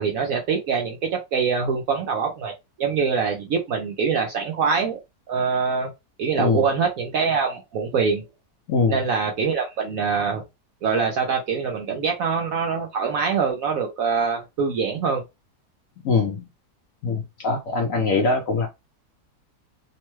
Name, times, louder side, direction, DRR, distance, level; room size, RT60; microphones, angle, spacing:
voice 1, 0.0-2.5 2.8-5.0 5.3-5.9 6.2-8.2 8.8-10.4 10.8-15.2, right 5 dB, 70° right, 0.8 m, -24 dB
voice 2, 8.7-9.0 16.0-16.5 17.0-18.7, left 4 dB, 70° left, 0.8 m, -22 dB
3.0 x 2.1 x 3.0 m
omnidirectional pair, 1.9 m